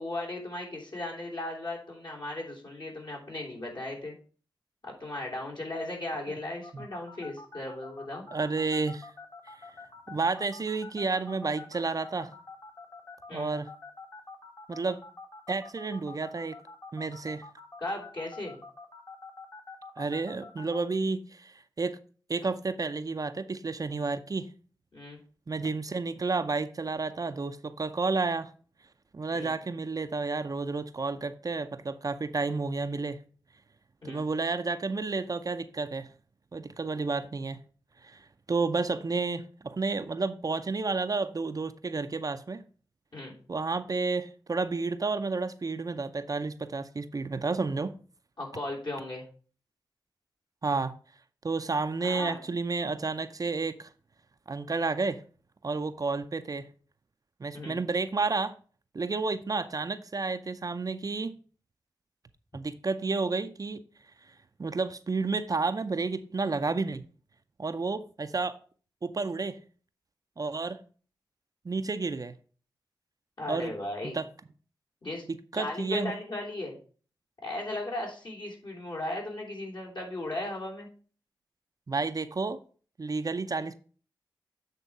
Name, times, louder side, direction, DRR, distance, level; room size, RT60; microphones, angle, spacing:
voice 1, 0.0-4.1 4.8-8.3 13.3-13.5 17.8-18.6 24.9-25.2 29.3-29.5 34.0-34.2 43.1-43.3 48.4-49.2 52.0-52.4 57.5-57.8 73.4-74.2 75.0-75.3 75.5-76.8 77.4-80.9, left 1 dB, 60° left, 3.1 m, -36 dB
sound 1, 6.6-20.8, left 3 dB, 40° left, 1.5 m, -46 dB
voice 2, 8.3-9.1 9.5-9.6 10.1-12.3 13.3-13.7 14.7-15.0 15.5-16.6 16.9-17.4 20.0-22.0 22.3-24.5 25.5-28.5 29.1-33.2 34.0-36.1 36.5-37.6 38.0-42.6 43.5-47.9 50.6-50.9 51.4-53.9 54.5-55.2 55.6-56.7 57.4-58.5 58.9-61.4 62.5-63.8 64.6-67.0 67.6-68.6 69.0-69.6 70.4-70.8 71.6-72.3 73.5-73.7 74.0-74.3 75.3-76.1 81.9-82.6 83.0-83.8, right 3 dB, 45° right, 0.5 m, -31 dB
8.2 x 3.5 x 5.4 m
cardioid pair, 45°, 8 cm